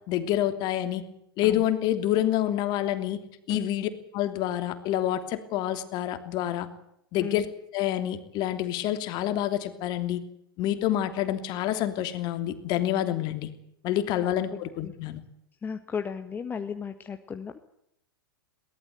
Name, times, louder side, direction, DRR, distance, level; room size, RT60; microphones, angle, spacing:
voice 1, 0.1-1.0 1.4-3.2 3.5-6.7 7.1-7.5 7.7-10.2 10.6-13.5 13.8-15.2, left 12 dB, 35° left, 9 dB, 3.0 m, -27 dB
voice 2, 15.6-17.6, left 6 dB, 15° left, 7 dB, 1.6 m, -35 dB
22.5 x 19.0 x 8.1 m, 0.77 s
figure-of-eight pair, 100°, 12 cm